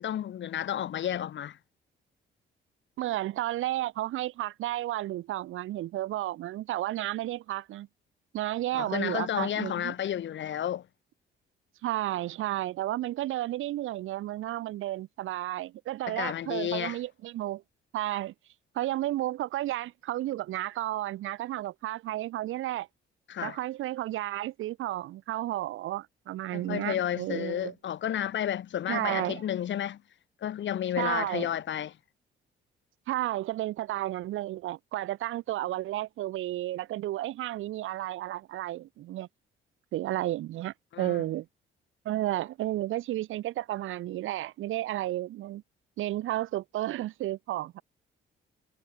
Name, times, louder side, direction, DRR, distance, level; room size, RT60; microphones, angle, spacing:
voice 1, 0.0-1.6 8.7-10.8 16.1-17.0 23.3-23.6 26.5-30.0 30.4-31.9 40.9-41.2, left 10 dB, 70° left, 7.2 m, -31 dB
voice 2, 3.0-7.9 8.3-9.9 11.8-17.6 17.9-18.3 18.7-22.9 23.4-27.7 28.9-29.4 31.0-31.5 33.1-39.3 39.9-41.5 42.1-45.6 46.0-47.8, right 15 dB, 85° right, 3.7 m, -32 dB
cardioid pair, 90°, 20 cm